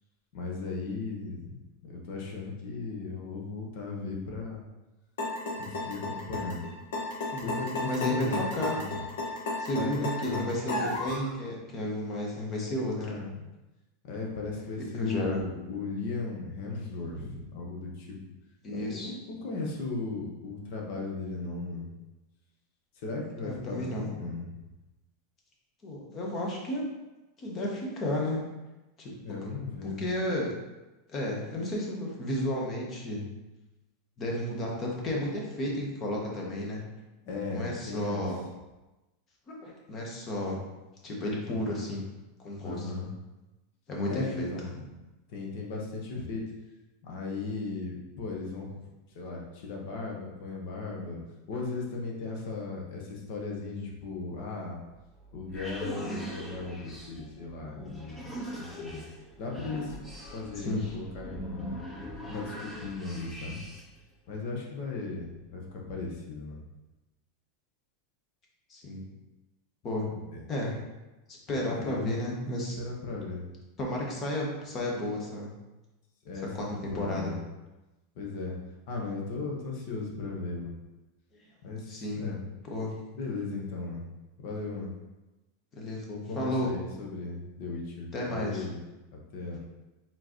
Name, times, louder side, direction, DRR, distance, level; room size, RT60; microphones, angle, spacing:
voice 1, 0.3-1.5 1.9-4.6 5.6-6.6 7.4-8.9 9.7-10.5 13.0-13.4 14.0-18.2 18.7-21.9 22.9-24.5 29.2-30.0 37.2-38.2 42.6-43.1 44.1-44.7 45.3-46.4 47.0-48.7 49.1-51.2 51.5-54.8 55.3-59.0 59.4-59.9 60.3-61.7 62.3-63.6 64.3-66.6 70.1-70.4 71.6-72.1 72.8-73.5 76.2-77.4 78.1-78.5 78.9-80.7 81.6-82.4 83.1-84.1 84.4-84.9 86.1-88.8 89.3-89.6, left 3 dB, 50° left, -1 dB, 1.1 m, -37 dB
sound 1, 5.2-11.3, left 2 dB, 85° left, 1.5 m, -33 dB
voice 2, 7.9-8.8 9.6-13.0 14.9-15.4 18.6-19.1 23.4-24.1 25.8-26.8 27.4-28.4 29.0-29.1 29.8-30.5 31.1-33.2 34.2-36.8 37.5-38.4 39.5-40.6 41.0-42.0 42.4-42.8 43.9-44.5 44.7-44.8 60.6-60.9 68.7-69.0 69.8-70.1 70.5-70.8 71.3-72.8 73.8-75.5 76.5-77.3 81.9-82.2 82.7-82.9 85.7-86.0 86.3-86.7 88.1-88.7, left 1 dB, 25° left, -2 dB, 1.1 m, -32 dB
sound 2, 54.9-64.0, equal, ahead, 0.8 m, -41 dB
4.6 x 3.8 x 3.1 m, 1.1 s
supercardioid pair, 165°, 0 cm